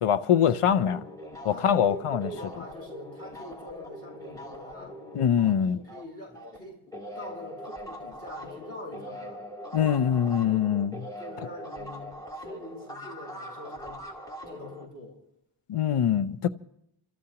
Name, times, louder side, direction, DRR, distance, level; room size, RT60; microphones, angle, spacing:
voice 1, 0.0-1.0 1.4-2.3 5.1-5.8 9.7-11.1 15.7-16.5, left 9 dB, 90° left, 0.6 m, -23 dB
sound 1, 0.7-6.6 6.9-14.9, equal, 5° left, 3.0 m, -42 dB
voice 2, 1.5-4.9 5.7-6.8 7.1-9.4 11.2-12.1 12.4-14.0 14.5-15.2, left 1 dB, 25° left, 7.7 m, -44 dB
29.0 x 13.5 x 2.9 m
wide cardioid pair, 45°, 50 cm